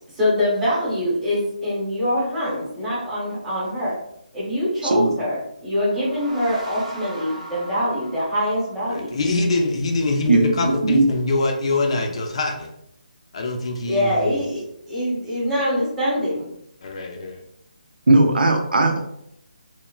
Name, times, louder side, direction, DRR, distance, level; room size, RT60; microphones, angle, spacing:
voice 1, 0.1-3.9 4.3-5.4 5.6-9.1 13.9-16.5, left 1 dB, 5° right, -9 dB, 0.8 m, -24 dB
sound 1, 5.7-9.2, right 1 dB, 45° right, 0.6 m, -38 dB
voice 2, 8.9-12.7 13.3-14.4 16.8-17.4, left 2 dB, 40° left, 2 dB, 0.4 m, -24 dB
voice 3, 10.3-11.1 18.1-19.0, right 2 dB, 90° right, 2 dB, 0.5 m, -17 dB
3.0 x 2.0 x 2.3 m, 0.76 s
hypercardioid pair, 165°, 5 cm